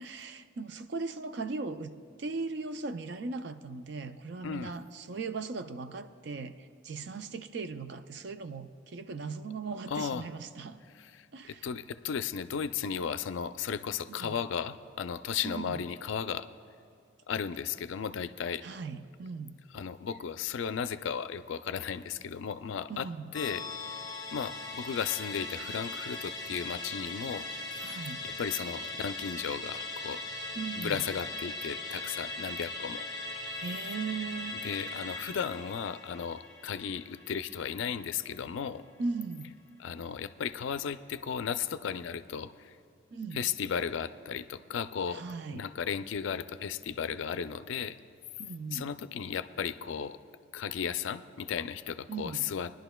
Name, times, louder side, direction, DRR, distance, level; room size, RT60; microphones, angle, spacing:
voice 1, 0.0-1.9 2.2-10.8 11.3-11.7 14.1-14.3 15.4-15.8 18.6-19.6 22.9-23.3 27.8-28.2 30.6-31.0 33.6-34.6 39.0-39.5 43.1-43.5 45.1-45.7 48.4-48.9 52.1-52.5, right 4 dB, 60° right, 10 dB, 0.4 m, -38 dB
voice 2, 9.9-10.3 10.9-16.5 17.3-18.7 19.7-23.6 23.9-24.1 24.3-27.5 28.2-30.2 30.8-33.0 34.6-38.8 39.8-42.8 43.3-45.2 45.5-48.0 48.7-50.2 50.5-52.7, left 7 dB, 75° left, 12 dB, 0.4 m, -35 dB
Musical instrument, 23.3-38.0 38.3-38.4, left 2 dB, 15° left, 0.8 m, -40 dB
21.5 x 11.5 x 2.2 m, 2.5 s
head